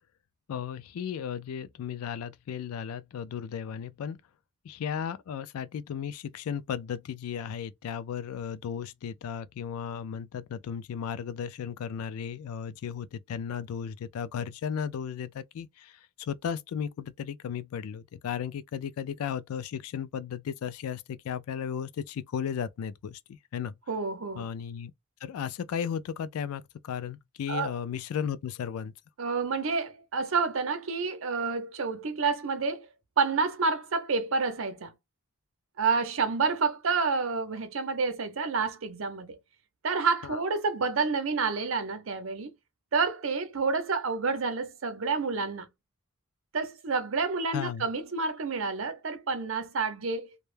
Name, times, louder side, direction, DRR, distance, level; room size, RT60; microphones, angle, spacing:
voice 1, 0.5-4.2 4.6-23.8 24.4-24.9 25.2-28.9 40.2-40.4 47.5-47.9, left 8 dB, 90° left, 0.3 m, -35 dB
voice 2, 23.9-24.4 27.5-27.7 29.2-32.9 33.2-34.9 35.8-39.4 39.8-42.5 42.9-45.7 46.5-50.3, right 4 dB, 65° right, 0.6 m, -29 dB
2.2 x 2.0 x 3.1 m
head